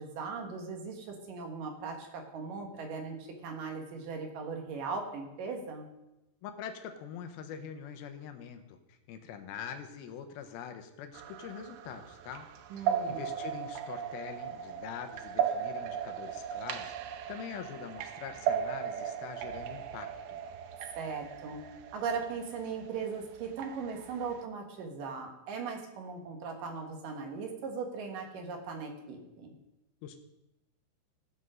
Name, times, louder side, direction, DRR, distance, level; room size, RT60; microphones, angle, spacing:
voice 1, 0.0-5.9 12.7-13.2 21.0-21.6 21.9-29.5, right 5 dB, 60° right, 2 dB, 2.6 m, -38 dB
voice 2, 6.4-12.5 12.7-20.4 30.0-30.2, left 8 dB, 75° left, 6 dB, 2.3 m, -44 dB
sound 1, 11.1-24.4, right 9 dB, 80° right, 2.8 m, -37 dB
15.5 x 5.4 x 6.2 m, 0.93 s
omnidirectional pair, 5.0 m